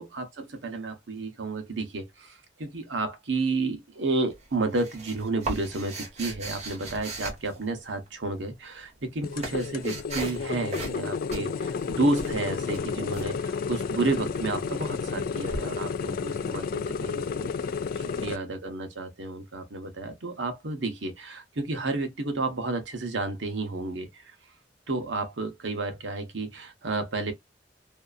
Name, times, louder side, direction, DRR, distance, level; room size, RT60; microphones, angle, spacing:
voice 1, 0.0-17.5 17.9-24.3 24.9-27.3, right 2 dB, 75° right, 0.9 m, -31 dB
sound 1, 4.3-8.1 8.9-10.4 10.7-11.0 11.3-13.3 15.5-15.6, right 2 dB, 40° right, 1.0 m, -37 dB
sound 2, 9.2-18.4, left 5 dB, 50° left, 0.3 m, -31 dB
2.7 x 2.4 x 2.4 m
head